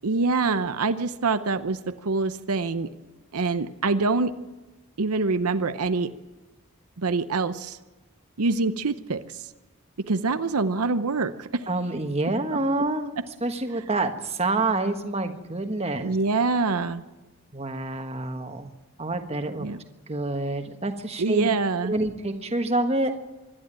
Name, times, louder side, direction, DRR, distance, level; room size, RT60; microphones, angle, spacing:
voice 1, 0.0-2.9 3.3-4.3 5.0-6.1 7.0-7.8 8.4-9.4 10.0-11.7 16.0-17.0 19.6-19.8 21.2-21.9, right 3 dB, 80° right, 10 dB, 0.8 m, -25 dB
voice 2, 11.7-13.1 13.4-16.2 17.5-18.7 19.0-19.7 20.1-21.5 21.8-23.2, right 2 dB, 30° right, 6 dB, 1.3 m, -27 dB
25.5 x 12.0 x 8.9 m, 1.2 s
head